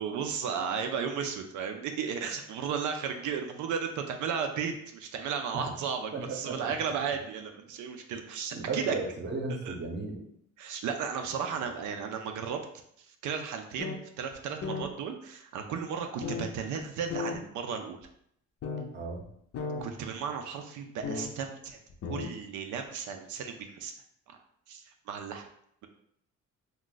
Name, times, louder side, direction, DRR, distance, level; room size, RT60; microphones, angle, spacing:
voice 1, 0.0-8.9 9.6-9.7 10.6-12.6 13.2-18.0 19.8-21.8 22.1-23.9 24.7-25.5, right 6 dB, 80° right, 5 dB, 0.5 m, -34 dB
voice 2, 6.1-6.7 8.5-10.3 11.6-11.7 18.9-19.2, right 3 dB, 35° right, 2 dB, 0.7 m, -35 dB
sound 1, 13.8-14.0 14.3-14.4 14.6-14.9 16.2-16.4 17.1-17.4 18.0-18.1 18.6-18.8 19.2-19.3 19.5-19.8 21.0-21.3 21.9-22.3, left 4 dB, 55° left, 0.5 m, -34 dB
2.4 x 2.2 x 3.8 m, 0.71 s
cardioid pair, 90°, 30 cm